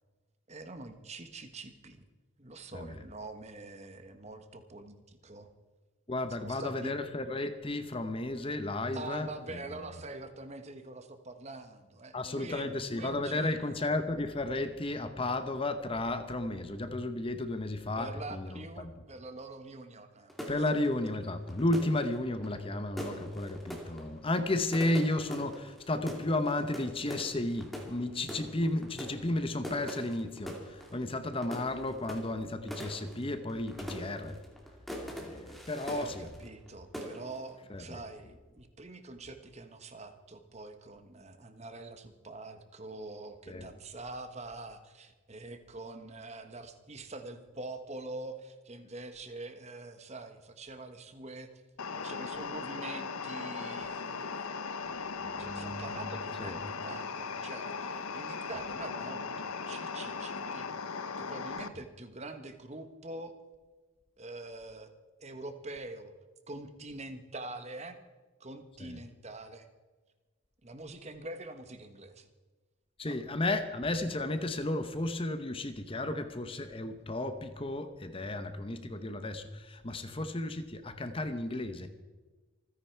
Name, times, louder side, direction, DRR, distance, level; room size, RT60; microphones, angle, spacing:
voice 1, 0.5-2.0 2.4-5.5 6.3-7.0 8.9-13.8 18.0-20.3 20.7-20.8 35.9-51.5 51.9-54.8 55.4-60.7 61.2-63.3 64.2-64.9 65.2-66.1 66.5-68.0 68.4-69.7 70.6-72.3 73.1-73.2, right 2 dB, 30° right, 8 dB, 1.2 m, -45 dB
voice 2, 6.1-9.6 12.1-18.9 20.5-34.4 35.2-36.3 37.7-37.8 43.5-43.7 55.1-56.0 56.4-56.6 68.8-69.0 73.0-81.9, left 2 dB, 25° left, 9 dB, 0.9 m, -33 dB
sound 1, 20.3-36.7 36.9-37.5, equal, ahead, 2.5 m, -43 dB
sound 2, 51.8-61.7, left 5 dB, 90° left, 0.9 m, -38 dB
27.0 x 10.0 x 4.6 m, 1.3 s
head